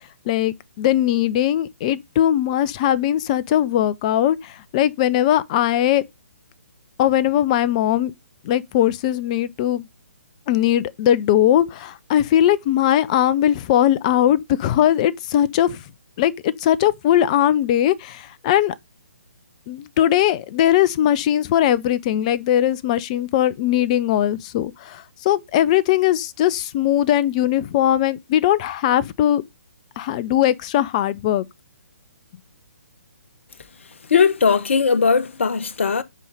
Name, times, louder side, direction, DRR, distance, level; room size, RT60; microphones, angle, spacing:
voice 1, 0.3-6.0 7.0-8.1 8.4-9.9 10.5-15.8 16.2-18.7 19.7-29.4 30.0-31.5, left 11 dB, 25° left, 0.7 m, -19 dB
voice 2, 34.1-36.0, left 5 dB, 55° left, 1.3 m, -18 dB
8.3 x 5.5 x 4.9 m
figure-of-eight pair, 135°, 8 cm